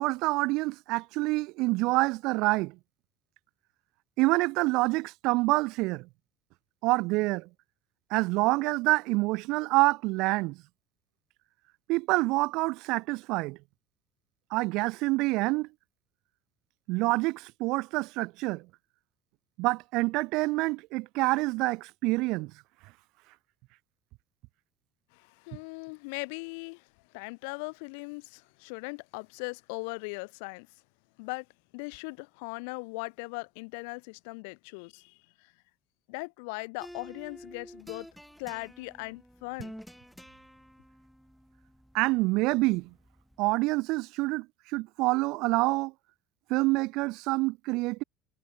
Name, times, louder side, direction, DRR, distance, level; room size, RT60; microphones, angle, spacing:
voice 1, 0.0-2.7 4.2-6.1 6.8-7.5 8.1-10.6 11.9-13.6 14.5-15.7 16.9-18.6 19.6-22.5 41.9-42.9 43.4-44.5 44.7-45.9 46.5-48.0, right 23 dB, 65° right, 0.8 m, -27 dB
voice 2, 25.1-26.9 27.1-30.7 31.2-31.5 31.7-35.5 36.1-38.1 38.4-39.7, left 32 dB, 85° left, 2.7 m, -39 dB
sound 1, 36.8-43.5, equal, ahead, 3.1 m, -50 dB
cardioid pair, 155°, 0 cm